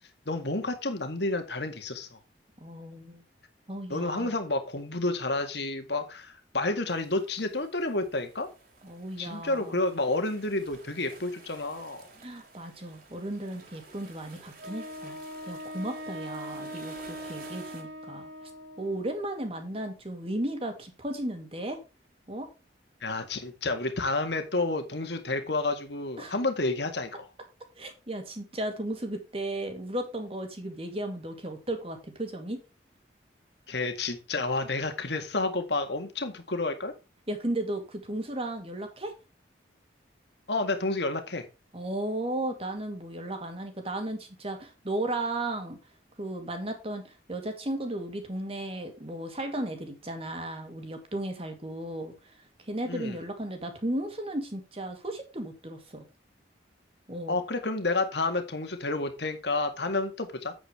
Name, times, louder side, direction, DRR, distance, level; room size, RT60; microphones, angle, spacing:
voice 1, 0.3-2.2 3.9-8.5 9.2-12.1 23.0-27.3 33.7-36.9 40.5-41.5 52.9-53.2 57.3-60.5, left 2 dB, 65° left, 6 dB, 2.0 m, -30 dB
voice 2, 2.6-3.2 3.7-4.4 8.8-9.8 12.2-15.2 15.5-18.5 18.8-21.8 22.3-22.5 26.2-26.3 27.8-32.6 37.3-39.1 41.7-45.8 46.2-56.0 57.1-57.4, right 1 dB, 30° right, 5 dB, 2.5 m, -35 dB
sound 1, 6.9-17.8, right 3 dB, 55° right, 3.2 m, -53 dB
Wind instrument woodwind instrument, 14.6-19.2, equal, 80° right, 3.0 m, -41 dB
8.8 x 8.7 x 3.5 m, 0.28 s
head